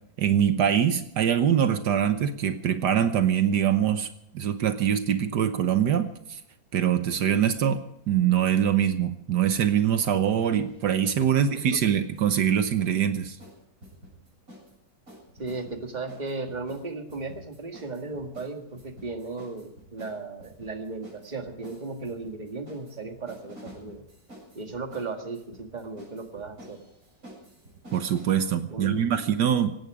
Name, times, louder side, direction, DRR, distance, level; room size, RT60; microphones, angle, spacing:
voice 1, 0.2-4.1 4.3-6.4 6.7-13.4 27.9-29.8, right 9 dB, 75° right, 9 dB, 1.6 m, -23 dB
sound 1, 10.5-11.5 11.8-14.7 15.1-28.4, equal, 55° right, 7.8 m, -49 dB
voice 2, 15.4-24.0 24.6-26.8 28.7-29.5, right 3 dB, 25° right, 4 dB, 2.0 m, -36 dB
18.0 x 16.5 x 4.9 m, 0.76 s
omnidirectional pair, 1.8 m